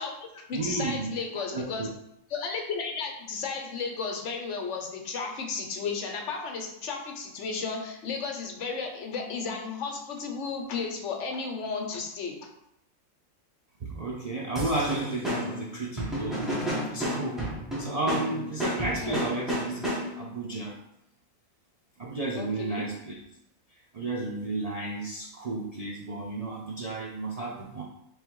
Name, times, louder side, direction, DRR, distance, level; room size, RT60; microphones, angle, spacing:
voice 1, 0.0-1.9 2.3-12.4 19.0-19.2 22.4-22.9, left 5 dB, 65° left, 2 dB, 1.0 m, -34 dB
voice 2, 0.5-1.9 13.8-16.7 16.9-17.4 17.8-20.8 22.0-23.2 23.9-27.8, right 2 dB, 55° right, -2 dB, 0.4 m, -33 dB
sound 1, 14.5-20.3, equal, ahead, 1.1 m, -32 dB
3.3 x 3.1 x 4.6 m, 0.80 s
omnidirectional pair, 1.3 m